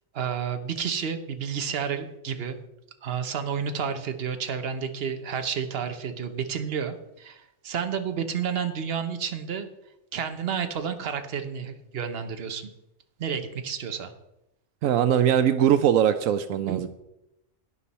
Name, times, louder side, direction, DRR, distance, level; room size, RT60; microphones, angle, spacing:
voice 1, 0.1-2.6 3.0-9.7 10.1-12.7 13.2-14.1 16.6-16.8, right 7 dB, 50° right, 7 dB, 1.1 m, -31 dB
voice 2, 14.8-16.9, right 9 dB, 80° right, 12 dB, 1.0 m, -21 dB
11.5 x 9.8 x 4.2 m, 0.88 s
omnidirectional pair, 1.4 m